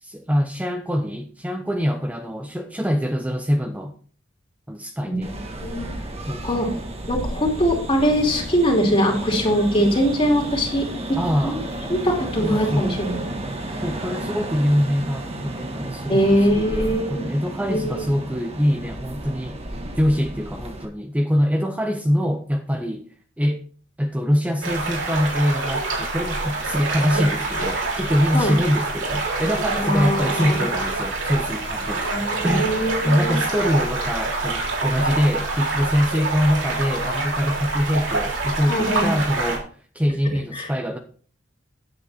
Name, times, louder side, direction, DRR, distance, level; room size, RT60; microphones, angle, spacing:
voice 1, 0.0-3.9 4.7-5.4 6.3-6.6 11.2-11.7 12.4-13.0 13.7-19.6 20.0-23.1 23.4-23.6 24.0-32.1 32.4-41.0, equal, 10° right, 0.7 m, -24 dB
sound 1, 5.2-20.9, right 1 dB, 35° right, 1.5 m, -32 dB
voice 2, 7.1-11.6 11.9-13.2 13.7-13.8 16.1-17.3 17.7-18.1 27.1-27.3 28.3-28.5 29.8-30.6 32.1-33.3 38.7-39.1 40.5-40.7, equal, 30° left, 2.9 m, -22 dB
sound 2, 24.6-39.6, right 3 dB, 75° right, 3.7 m, -26 dB
9.7 x 7.9 x 4.3 m
head